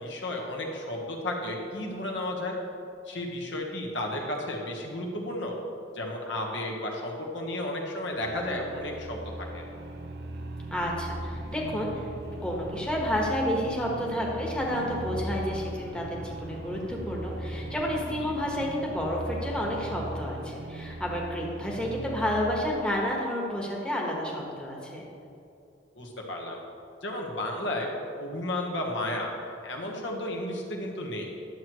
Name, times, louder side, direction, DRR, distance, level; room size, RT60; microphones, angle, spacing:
voice 1, 0.0-2.6 3.0-5.6 5.9-9.2 9.5-9.6 18.2-18.3 25.9-26.6 27.0-27.9 28.2-31.3, left 1 dB, 65° left, 0 dB, 1.2 m, -33 dB
sound 1, 8.1-22.9, right 1 dB, 60° right, 0.7 m, -39 dB
voice 2, 10.7-12.0 12.4-25.1, equal, 5° left, -3 dB, 1.2 m, -30 dB
sound 2, 11.1-20.0, right 1 dB, 40° right, 1.1 m, -47 dB
11.0 x 7.6 x 3.1 m, 2.6 s
head